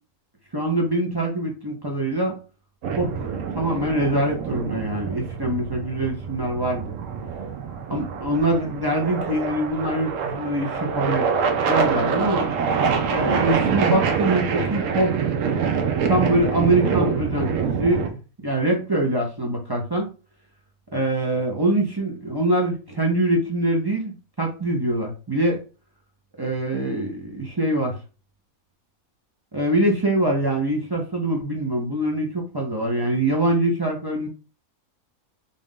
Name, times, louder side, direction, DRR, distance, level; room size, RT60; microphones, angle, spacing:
voice 1, 0.5-2.4 3.0-3.1 3.5-6.9 7.9-11.3 11.7-12.5 13.1-15.2 16.1-20.1 20.9-25.6 26.4-27.9 29.5-34.3, right 1 dB, 25° right, -1 dB, 0.5 m, -24 dB
sound 1, 2.8-18.1, right 6 dB, 70° right, 1.0 m, -25 dB
3.7 x 2.5 x 3.8 m, 0.34 s
omnidirectional pair, 1.5 m